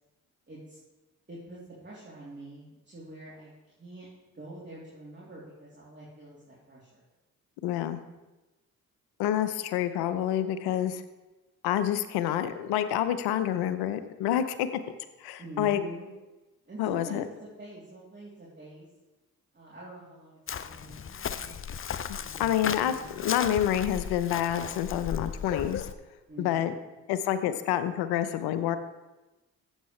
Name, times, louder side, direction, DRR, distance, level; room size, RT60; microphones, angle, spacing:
voice 1, 0.5-0.8 1.3-4.1 4.3-7.0 15.4-16.1 16.6-18.9 19.5-21.7 22.1-23.3 26.3-26.8, right 2 dB, 30° right, -7 dB, 3.2 m, -46 dB
voice 2, 7.6-8.0 9.2-11.0 11.6-14.7 15.2-15.8 16.8-17.2 22.1-25.9 26.4-26.7 27.1-28.8, left 11 dB, 80° left, 11 dB, 0.8 m, -28 dB
Chirp tweet, 20.5-25.9, left 7 dB, 35° left, 0.6 m, -36 dB
14.0 x 8.1 x 3.2 m, 1.1 s
hypercardioid pair, 50°, 38 cm